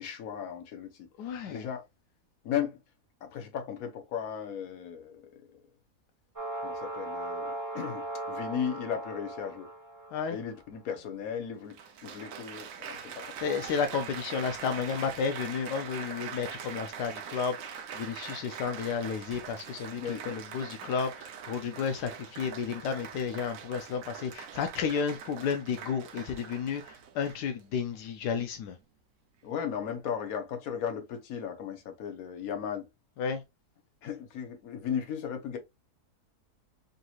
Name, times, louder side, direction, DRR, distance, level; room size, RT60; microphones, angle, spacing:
voice 1, 0.0-1.8 2.4-2.8 3.2-5.3 6.6-9.7 10.3-11.8 12.0-13.4 20.0-20.2 29.4-32.9 34.0-35.6, left 8 dB, 60° left, 1.3 m, -36 dB
voice 2, 1.2-1.6 10.1-10.4 13.4-28.7 33.2-33.4, left 6 dB, 85° left, 1.2 m, -32 dB
sound 1, 6.4-10.4, right 2 dB, 20° right, 0.5 m, -38 dB
Applause, 10.9-11.0 11.7-27.6 28.3-28.7, right 7 dB, 65° right, 0.9 m, -43 dB
5.3 x 3.0 x 2.3 m
omnidirectional pair, 1.7 m